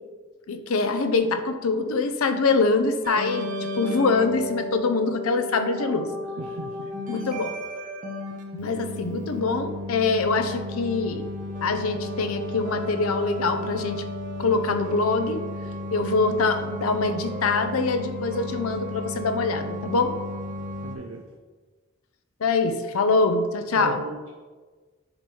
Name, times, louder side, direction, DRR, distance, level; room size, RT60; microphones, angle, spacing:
voice 1, 0.5-3.5 3.8-6.1 7.1-7.5 8.5-11.2 11.6-14.0 14.4-15.4 15.9-20.1 22.4-24.0, left 3 dB, 85° left, 8 dB, 0.6 m, -24 dB
sound 1, 3.0-21.0, left 1 dB, 35° right, 0.7 m, -34 dB
voice 2, 6.4-6.9 20.8-21.2 23.8-24.3, right 2 dB, 80° right, 3 dB, 0.5 m, -34 dB
7.7 x 2.9 x 5.4 m, 1.4 s
head